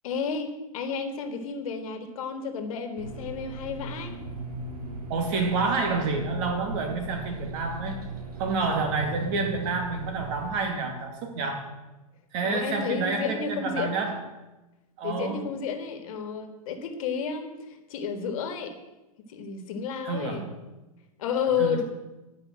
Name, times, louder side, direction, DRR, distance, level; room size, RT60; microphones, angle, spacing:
voice 1, 0.0-4.1 12.4-14.0 15.0-18.7 19.3-20.5 21.2-21.8, left 6 dB, 60° left, 7 dB, 1.6 m, -31 dB
sound 1, 3.0-10.5, right 2 dB, 85° right, 1.9 m, -37 dB
voice 2, 5.1-8.0 8.4-11.7 12.3-14.2 15.0-15.5 20.0-20.5 21.6-21.8, right 4 dB, 50° right, 4 dB, 2.3 m, -29 dB
11.0 x 5.3 x 7.4 m, 1.0 s
hypercardioid pair, 115°, 19 cm